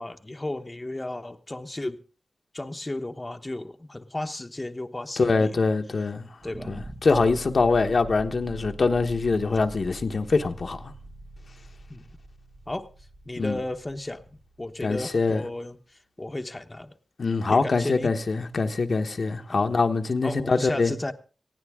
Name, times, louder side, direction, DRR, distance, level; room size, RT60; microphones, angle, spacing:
voice 1, 0.0-2.0 2.5-5.5 6.4-7.0 11.9-12.0 12.7-12.9 13.3-14.3 14.6-16.9 17.5-18.1 20.2-21.1, left 1 dB, 25° left, 0.9 m, -34 dB
voice 2, 5.2-6.3 6.7-10.9 13.4-13.6 14.8-15.4 17.2-20.9, left 4 dB, 65° left, 1.1 m, -24 dB
sound 1, 6.4-15.5, right 2 dB, 85° right, 6.7 m, -43 dB
19.5 x 15.5 x 3.6 m
wide cardioid pair, 90°, 0 cm